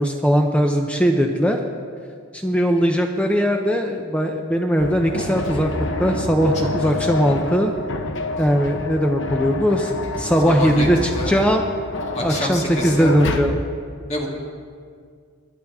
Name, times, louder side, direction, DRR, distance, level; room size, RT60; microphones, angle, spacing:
voice 1, 0.0-1.6 2.3-7.7 8.4-11.7 12.2-13.6, equal, 5° left, 3 dB, 0.6 m, -19 dB
sound 1, 4.8-13.4, left 2 dB, 55° left, 0.9 m, -28 dB
voice 2, 10.4-10.9 11.1-11.4 12.1-13.1 14.1-14.3, left 1 dB, 30° left, -1 dB, 1.9 m, -27 dB
22.0 x 10.0 x 3.6 m, 2.1 s
head